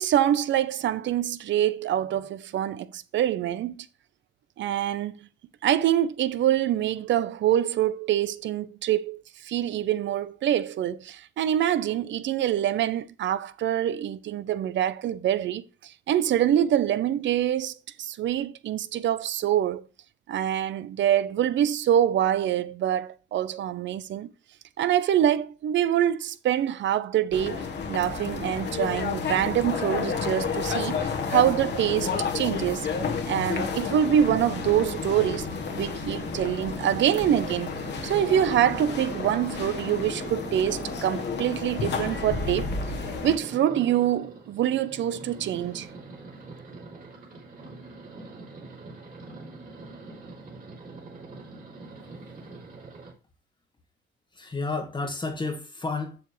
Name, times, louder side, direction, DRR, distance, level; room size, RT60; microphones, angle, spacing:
voice 1, 0.0-3.9 4.6-5.3 5.6-19.8 20.3-24.3 24.8-32.9 33.3-35.5 35.7-37.7 38.0-42.7 43.2-45.9, right 11 dB, 65° right, 0.7 m, -25 dB
sound 1, 27.3-43.4, left 5 dB, 60° left, 1.3 m, -31 dB
sound 2, 34.4-53.1, right 2 dB, 45° right, 3.1 m, -42 dB
voice 2, 52.0-52.6 54.3-56.2, left 3 dB, 25° left, 1.3 m, -32 dB
7.1 x 7.0 x 3.2 m
cardioid pair, 90°, 20 cm